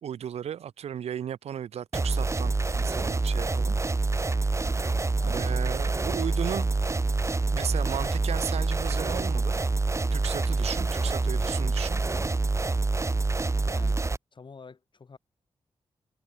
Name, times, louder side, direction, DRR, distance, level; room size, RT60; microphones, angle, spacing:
voice 1, 0.0-3.8 5.2-6.7 7.5-9.6 10.1-12.0, right 9 dB, 90° right, 1.1 m, -35 dB
sound 1, 1.9-14.2, right 3 dB, 30° right, 1.3 m, -26 dB
voice 2, 5.2-5.5 13.7-14.0 14.3-15.2, left 5 dB, 50° left, 5.3 m, -47 dB
cardioid pair, 75°, 10 cm